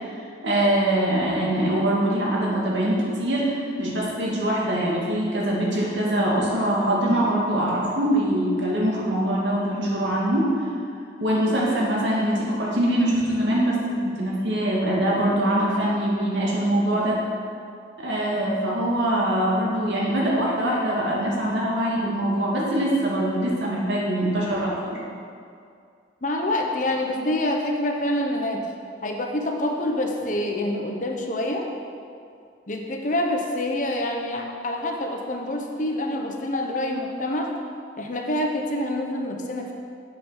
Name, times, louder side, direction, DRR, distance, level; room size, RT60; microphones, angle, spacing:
voice 1, 0.4-10.5 11.2-13.8 14.0-17.2 18.0-25.0, right 1 dB, 75° right, -5 dB, 2.3 m, -23 dB
voice 2, 26.2-28.6 29.0-31.6 32.7-37.5 38.0-39.7, left 1 dB, 40° left, 2 dB, 0.9 m, -26 dB
7.7 x 6.4 x 6.3 m, 2.3 s
head